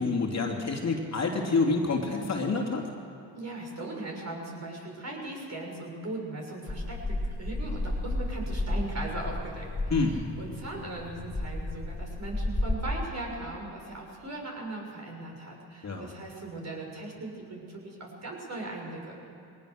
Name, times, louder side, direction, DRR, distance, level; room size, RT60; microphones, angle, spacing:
voice 1, 0.0-2.8 9.9-10.2 15.8-16.1, left 3 dB, 40° left, 1 dB, 2.9 m, -27 dB
voice 2, 3.3-19.2, right 2 dB, 40° right, -1 dB, 6.5 m, -39 dB
sound 1, 6.7-12.8, left 1 dB, 15° left, 2.2 m, -32 dB
21.0 x 18.5 x 6.7 m, 2.7 s
supercardioid pair, 70°, 43 cm